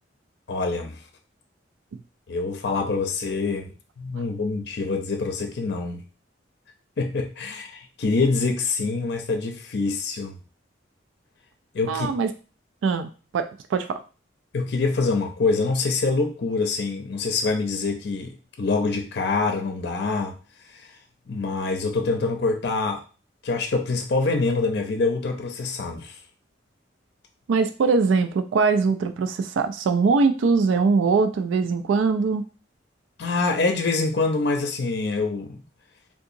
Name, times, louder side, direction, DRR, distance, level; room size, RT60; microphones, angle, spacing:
voice 1, 0.5-1.0 2.3-6.0 7.0-10.3 11.7-12.1 14.5-20.4 20.7-20.9 21.3-23.0 23.4-26.2 33.2-35.6, left 3 dB, 60° left, 4 dB, 0.5 m, -25 dB
voice 2, 11.9-12.3 12.8-14.0 27.5-32.4, right 4 dB, 85° right, 8 dB, 0.3 m, -22 dB
3.5 x 2.8 x 2.5 m, 0.35 s
head